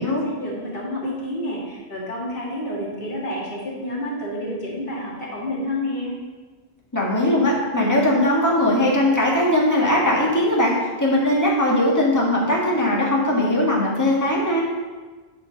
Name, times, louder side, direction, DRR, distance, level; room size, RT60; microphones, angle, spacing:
voice 1, 0.0-6.1, left 1 dB, 55° left, -5 dB, 2.1 m, -29 dB
voice 2, 6.9-14.7, left 1 dB, 15° left, -4 dB, 1.7 m, -20 dB
9.4 x 4.4 x 5.2 m, 1.3 s
omnidirectional pair, 1.1 m